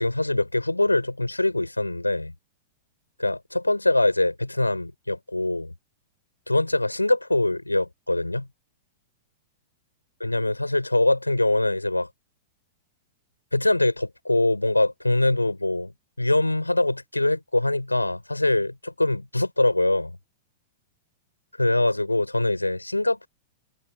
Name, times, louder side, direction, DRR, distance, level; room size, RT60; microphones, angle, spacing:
voice 1, 0.0-2.3 3.2-5.7 6.5-8.5 10.2-12.1 13.5-15.9 16.2-20.2 21.6-23.3, left 2 dB, 85° left, 6.7 m, -23 dB
figure-of-eight pair, 95°, 0 cm